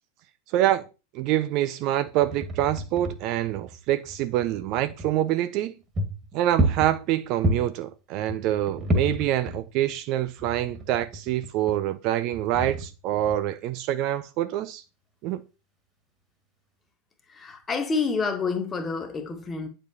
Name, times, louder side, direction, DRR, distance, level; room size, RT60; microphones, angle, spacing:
voice 1, 0.5-0.8 1.1-5.7 6.3-14.8 15.2-15.4, right 13 dB, 40° right, 0.5 m, -26 dB
sound 1, 2.1-5.1 5.6-5.7 5.9-7.8 8.3-10.0 10.3-11.7 12.3-13.6, right 1 dB, 20° right, 1.9 m, -30 dB
voice 2, 17.3-19.7, left 4 dB, 15° left, 1.5 m, -28 dB
9.5 x 6.6 x 2.9 m
figure-of-eight pair, 90°, 0 cm